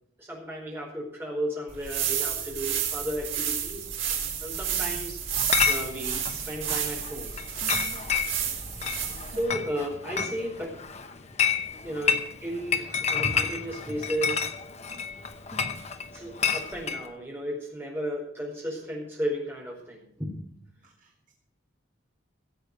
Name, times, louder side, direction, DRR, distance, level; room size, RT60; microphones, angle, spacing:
voice 1, 0.2-3.9 4.3-5.2 5.7-7.3 9.3-10.7 11.8-14.5 16.1-20.6, equal, 10° right, -2 dB, 4.6 m, -34 dB
sound 1, 1.7-9.5, right 8 dB, 70° right, 4.1 m, -31 dB
Chatter / Chink clink, 5.3-17.0, left 6 dB, 35° left, 0.8 m, -30 dB
voice 2, 7.6-8.0 9.3-9.5 15.5-15.8 20.8-21.3, right 1 dB, 40° right, 0 dB, 1.6 m, -48 dB
16.0 x 8.0 x 6.6 m, 0.68 s
head